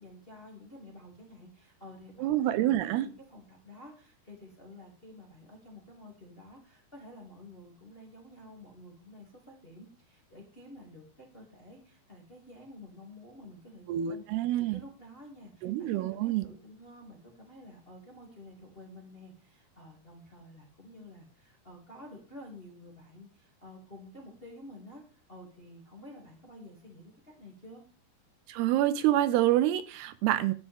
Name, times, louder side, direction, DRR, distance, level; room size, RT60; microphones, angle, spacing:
voice 1, 0.0-27.8, left 1 dB, 20° left, 1.8 m, -51 dB
voice 2, 2.2-3.1 13.9-14.8 15.6-16.4 28.5-30.5, right 13 dB, 80° right, 2.5 m, -27 dB
12.5 x 10.0 x 3.6 m
omnidirectional pair, 4.8 m